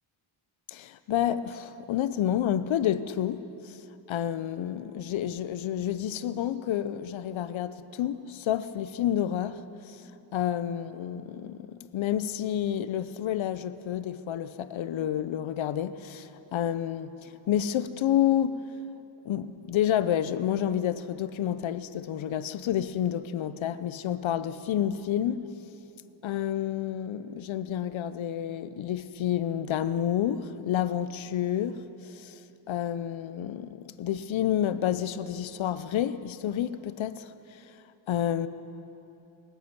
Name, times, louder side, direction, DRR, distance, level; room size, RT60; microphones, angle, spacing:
voice 1, 0.7-3.4 4.1-9.6 9.9-10.0 10.3-18.6 19.3-25.4 26.2-31.8 32.1-32.4 32.7-37.3 38.1-38.5, left 10 dB, 70° left, 0.7 m, -29 dB
24.0 x 8.1 x 6.0 m
cardioid pair, 90°, 49 cm